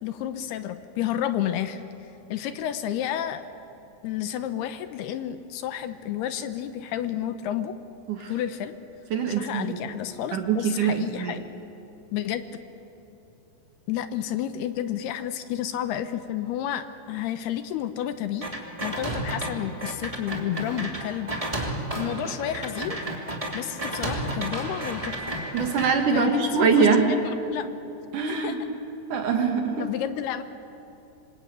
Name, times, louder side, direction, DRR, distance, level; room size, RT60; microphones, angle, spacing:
voice 1, 0.0-1.8 2.3-3.5 4.0-7.8 8.3-8.8 9.3-11.5 12.1-12.4 13.9-18.5 18.8-21.3 21.6-21.7 22.0-23.0 23.5-25.4 26.1-27.7 28.3-28.5 29.8-30.4, left 11 dB, 75° left, 10 dB, 2.7 m, -31 dB
voice 2, 9.1-9.8 10.3-11.4 25.5-27.1 28.1-28.6 29.1-29.9, right 5 dB, 55° right, 4 dB, 2.7 m, -23 dB
sound 1, 18.4-19.5 19.8-25.9, right 1 dB, 10° right, 1.8 m, -31 dB
26.5 x 24.5 x 8.9 m, 2.9 s
omnidirectional pair, 5.0 m